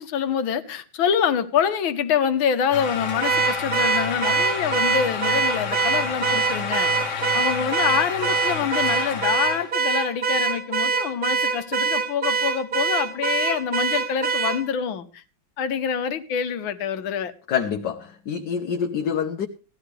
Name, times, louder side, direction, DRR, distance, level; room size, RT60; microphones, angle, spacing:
voice 1, 0.0-15.2 15.6-17.3, left 7 dB, 85° left, 1.8 m, -26 dB
sound 1, 2.7-9.7, left 5 dB, 45° left, 1.2 m, -30 dB
Car / Alarm, 3.2-14.6, right 5 dB, 45° right, 0.7 m, -24 dB
voice 2, 17.5-19.5, left 7 dB, 65° left, 1.5 m, -26 dB
18.0 x 13.0 x 3.3 m
omnidirectional pair, 2.1 m